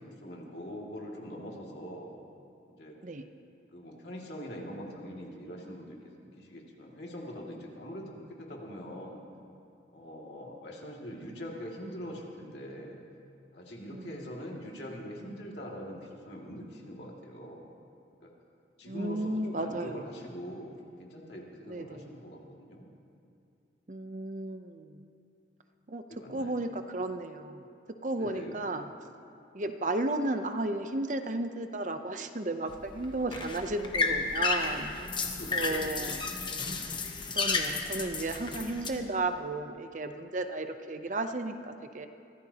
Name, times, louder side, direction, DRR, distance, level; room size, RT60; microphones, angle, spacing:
voice 1, 0.0-2.1 2.7-3.0 3.7-9.2 9.9-13.0 13.5-17.7 18.2-18.3 18.8-22.9 26.1-26.6 28.2-28.5 35.2-36.0, equal, 70° left, -2 dB, 2.3 m, -43 dB
voice 2, 13.9-14.3 18.9-20.0 21.7-22.1 23.9-25.0 25.9-27.7 28.0-28.8 29.5-34.9 35.5-36.3 37.3-42.1, right 2 dB, 45° right, 8 dB, 0.7 m, -34 dB
sound 1, 32.7-38.9, left 4 dB, 25° left, 1.0 m, -32 dB
23.5 x 16.0 x 2.9 m, 2.5 s
head